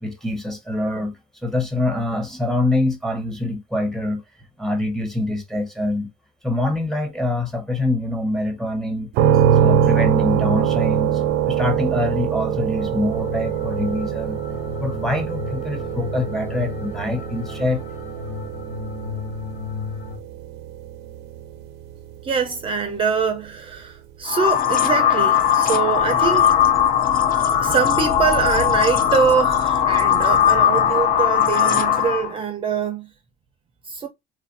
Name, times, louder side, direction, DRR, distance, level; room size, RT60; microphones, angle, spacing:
voice 1, 0.0-1.2 1.4-4.2 4.6-6.1 6.4-9.1 9.6-14.4 14.8-17.8, left 2 dB, ahead, 0.8 m, -25 dB
sound 1, 9.1-22.9, right 9 dB, 85° right, 0.5 m, -23 dB
sound 2, 12.7-20.2, left 6 dB, 90° left, 1.5 m, -34 dB
voice 2, 22.2-26.5 27.6-33.1 33.9-34.1, right 6 dB, 30° right, 0.4 m, -23 dB
sound 3, 24.3-32.3, left 9 dB, 60° left, 0.6 m, -19 dB
3.0 x 2.4 x 2.5 m
cardioid pair, 110°, 17 cm